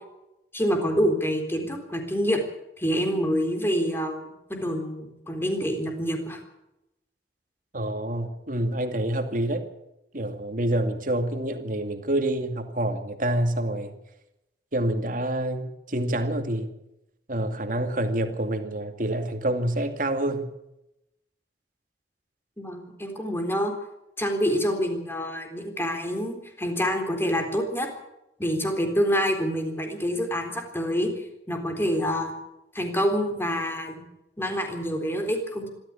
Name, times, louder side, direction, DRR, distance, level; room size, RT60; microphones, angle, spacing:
voice 1, 0.5-2.4 2.8-4.2 4.5-6.4 22.6-23.7 24.2-27.9 28.4-31.1 31.5-32.3 32.7-34.0 34.4-35.7, equal, 15° left, 4 dB, 3.8 m, -26 dB
voice 2, 7.7-9.6 10.1-14.0 14.7-16.7 17.3-20.5, right 1 dB, 50° right, 7 dB, 2.3 m, -27 dB
25.0 x 13.5 x 8.5 m, 0.89 s
head